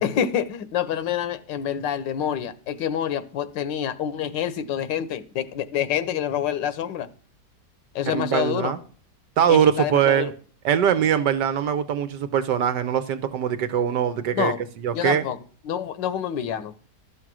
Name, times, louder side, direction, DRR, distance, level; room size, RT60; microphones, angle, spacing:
voice 1, 0.0-7.1 7.9-8.7 9.5-10.3 14.3-14.6 14.9-15.4 15.6-16.7, left 9 dB, 90° left, 1.5 m, -27 dB
voice 2, 8.1-8.8 9.4-10.3 10.6-15.2, right 9 dB, 75° right, 1.4 m, -22 dB
12.5 x 6.4 x 6.1 m
omnidirectional pair, 1.9 m